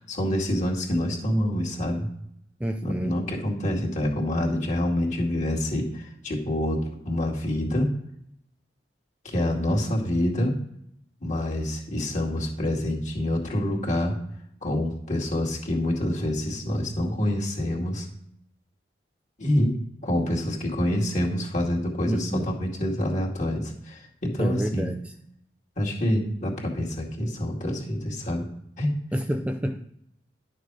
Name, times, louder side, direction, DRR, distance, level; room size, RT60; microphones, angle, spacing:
voice 1, 0.0-2.1 2.8-6.8 7.0-7.9 9.2-10.5 11.2-14.2 14.6-18.1 19.4-19.7 20.0-24.9 25.8-28.5 28.8-28.9, left 1 dB, 45° left, -2 dB, 2.2 m, -26 dB
voice 2, 2.6-3.2 22.1-22.5 24.4-25.1 29.1-30.0, right 1 dB, 5° right, 6 dB, 0.4 m, -29 dB
11.5 x 6.6 x 4.8 m, 0.75 s
head